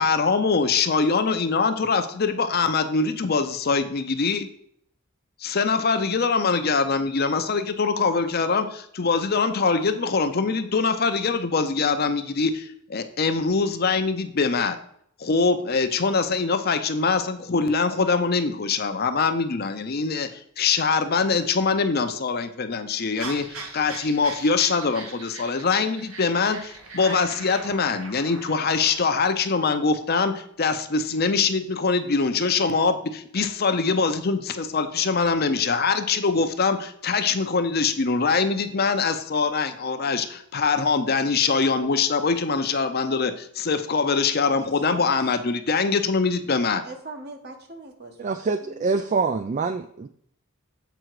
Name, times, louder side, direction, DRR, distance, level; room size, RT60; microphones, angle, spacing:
voice 1, 0.0-4.5 5.4-14.8 15.2-46.8, left 4 dB, 50° left, 8 dB, 0.6 m, -23 dB
sound 1, 23.2-29.2, right 3 dB, 85° right, 1.4 m, -39 dB
voice 2, 44.5-45.5 46.8-49.1, right 2 dB, 50° right, 4 dB, 1.3 m, -43 dB
voice 3, 48.2-50.1, right 4 dB, 35° right, 9 dB, 0.3 m, -25 dB
7.9 x 4.8 x 4.7 m, 0.66 s
head